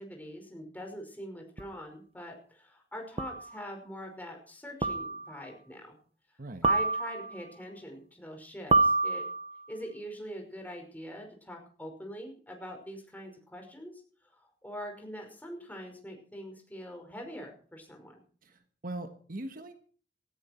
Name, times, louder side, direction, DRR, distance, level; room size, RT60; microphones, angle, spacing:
voice 1, 0.0-6.0 6.6-9.3 9.7-14.0 14.3-18.2, equal, 10° left, 3 dB, 5.3 m, -43 dB
sound 1, 1.6-1.7 3.2-3.6 4.8-5.4 6.6-7.4 8.7-9.6, right 3 dB, 35° right, 1.0 m, -27 dB
voice 2, 6.4-6.7 18.4-19.7, right 1 dB, 50° right, 8 dB, 1.5 m, -41 dB
18.5 x 14.0 x 4.5 m, 0.43 s
head